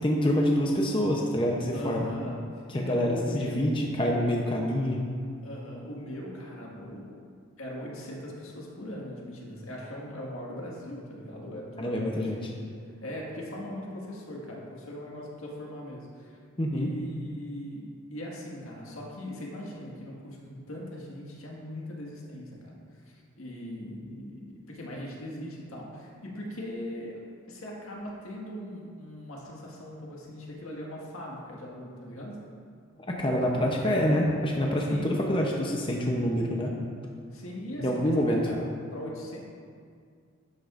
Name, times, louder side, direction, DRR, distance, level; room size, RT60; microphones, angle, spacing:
voice 1, 0.0-2.1 2.7-5.0 11.8-12.4 16.6-16.9 33.1-36.7 37.8-38.4, equal, 25° left, -1 dB, 0.7 m, -26 dB
voice 2, 1.7-3.7 5.4-7.2 7.6-12.4 13.0-16.4 16.7-27.2 27.5-32.4 34.9-35.2 37.3-38.6 38.9-39.4, equal, 85° left, -3 dB, 1.8 m, -40 dB
11.5 x 8.5 x 2.5 m, 2.2 s
head